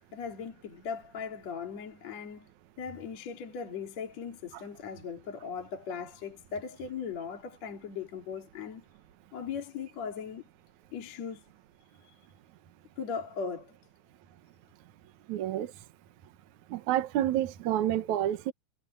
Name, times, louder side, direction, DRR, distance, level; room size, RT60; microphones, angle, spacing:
voice 1, 0.1-2.5 2.8-8.8 9.3-10.4 10.9-11.4 12.0-12.2 13.0-13.8, left 6 dB, 40° left, 3.3 m, -38 dB
voice 2, 15.3-15.7 16.7-18.5, right 12 dB, 80° right, 1.7 m, -29 dB
omnidirectional pair, 5.4 m